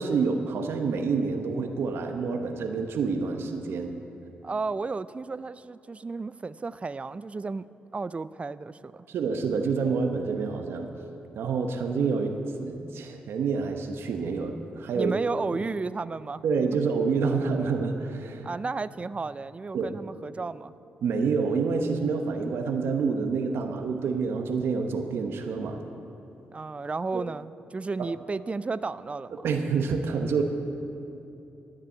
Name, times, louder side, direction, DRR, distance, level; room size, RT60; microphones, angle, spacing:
voice 1, 0.0-4.0 9.1-10.9 11.3-12.3 12.6-15.1 15.5-15.6 16.4-18.5 19.7-20.0 21.0-25.8 27.1-27.2 28.0-28.1 29.4-30.4, right 5 dB, 75° right, 5 dB, 1.0 m, -28 dB
voice 2, 4.4-7.7 7.9-9.1 14.9-16.4 18.4-20.7 26.5-29.5, right 4 dB, 30° right, 16 dB, 0.4 m, -33 dB
13.0 x 6.8 x 9.3 m, 2.8 s
supercardioid pair, 50°, 4 cm